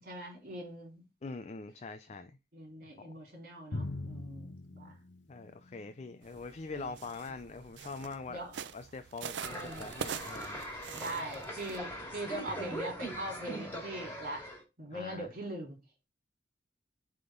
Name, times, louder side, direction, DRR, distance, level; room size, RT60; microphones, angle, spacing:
voice 1, 0.0-1.1 2.5-5.0 6.7-6.9 8.3-8.7 9.5-9.9 10.9-14.4 14.8-15.8, right 1 dB, 55° right, 3.7 m, -42 dB
voice 2, 1.2-2.4 3.0-3.2 5.3-8.4 8.7-10.6 14.9-15.3, left 3 dB, 40° left, 0.5 m, -43 dB
Drum, 3.7-6.1, left 2 dB, 90° left, 1.0 m, -42 dB
sound 1, 6.2-11.8, right 7 dB, 75° right, 0.5 m, -44 dB
sound 2, 9.4-14.6, equal, 15° left, 2.2 m, -41 dB
7.8 x 3.7 x 3.8 m
head